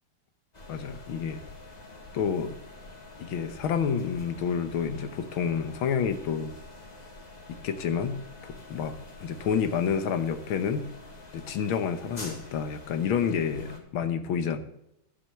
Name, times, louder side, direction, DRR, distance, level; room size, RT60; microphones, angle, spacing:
sound 1, 0.5-13.8, left 2 dB, 20° left, 1.8 m, -47 dB
voice 1, 0.7-1.4 2.1-2.6 3.2-6.5 7.5-10.9 11.3-14.6, left 7 dB, 75° left, 10 dB, 1.8 m, -29 dB
12.0 x 7.6 x 6.6 m, 0.83 s
omnidirectional pair, 2.3 m